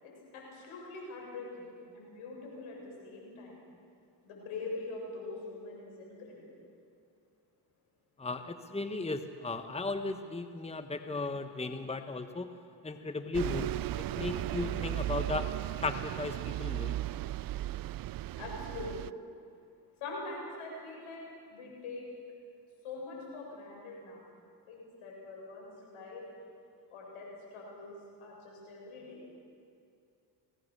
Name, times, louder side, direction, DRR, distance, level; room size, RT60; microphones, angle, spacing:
voice 1, 0.0-1.7 1.9-3.6 4.2-6.4 18.4-19.0 20.0-21.2 21.5-22.0 22.8-24.2 24.7-26.2 26.9-27.3 27.5-27.9 28.2-29.3, left 3 dB, 80° left, -1 dB, 7.7 m, -43 dB
voice 2, 8.2-12.5 12.8-13.7 14.0-15.5 15.8-17.0, left 3 dB, 10° left, 8 dB, 1.3 m, -36 dB
Bus, 13.3-19.1, right 14 dB, 45° right, 0.5 m, -36 dB
24.5 x 18.0 x 6.9 m, 2.4 s
supercardioid pair, 55°, 50 cm